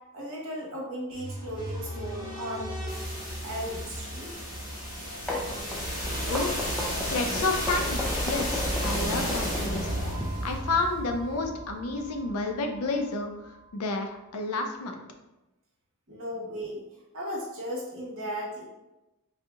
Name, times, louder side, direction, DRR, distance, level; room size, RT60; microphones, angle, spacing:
voice 1, 0.1-3.0 3.4-4.4 16.1-16.8 17.1-18.6, equal, 60° right, -5 dB, 1.2 m, -36 dB
sound 1, 1.1-13.0, equal, 35° left, 1.4 m, -33 dB
sound 2, 5.0-10.2, left 1 dB, 5° left, 0.5 m, -34 dB
voice 2, 6.3-6.6 7.1-8.0 8.3-10.0 10.4-15.0, left 3 dB, 80° left, 4 dB, 0.5 m, -30 dB
4.1 x 2.6 x 2.4 m, 0.99 s
head